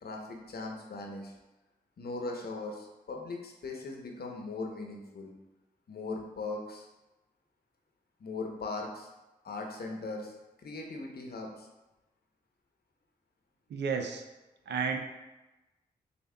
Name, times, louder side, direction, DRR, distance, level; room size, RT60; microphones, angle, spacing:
voice 1, 0.0-1.3 2.0-5.3 5.9-6.9 8.2-9.1 9.4-10.3 10.6-11.7, left 3 dB, 60° left, 1 dB, 0.9 m, -39 dB
voice 2, 13.7-14.2 14.7-15.0, right 5 dB, 70° right, 5 dB, 0.5 m, -31 dB
6.4 x 2.8 x 2.3 m, 1.1 s
supercardioid pair, 40°, 18 cm